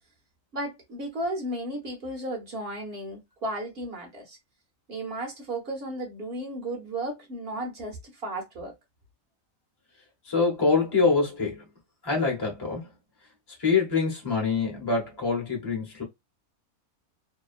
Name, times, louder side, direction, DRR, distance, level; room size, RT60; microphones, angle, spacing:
voice 1, 0.5-4.4 4.9-8.7, right 1 dB, 45° right, 1.1 m, -34 dB
voice 2, 10.3-11.6 12.0-12.9 13.6-16.0, left 4 dB, 20° left, 0.8 m, -25 dB
2.9 x 2.2 x 2.4 m
omnidirectional pair, 1.5 m